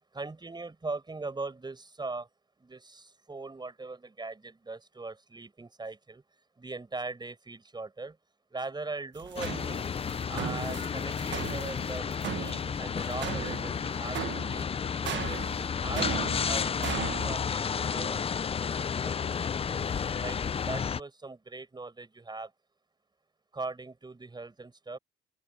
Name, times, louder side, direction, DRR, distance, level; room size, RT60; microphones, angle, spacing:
voice 1, 0.1-2.3 2.6-6.2 6.6-8.2 8.5-9.9 10.3-15.4 15.8-19.8 20.2-22.5 23.5-25.0, right 3 dB, 20° right, 5.3 m, -40 dB
sound 1, 9.2-17.3, right 11 dB, 65° right, 1.3 m, -38 dB
sound 2, 9.4-21.0, left 6 dB, 30° left, 0.5 m, -32 dB
open air
cardioid pair, 90°, 20 cm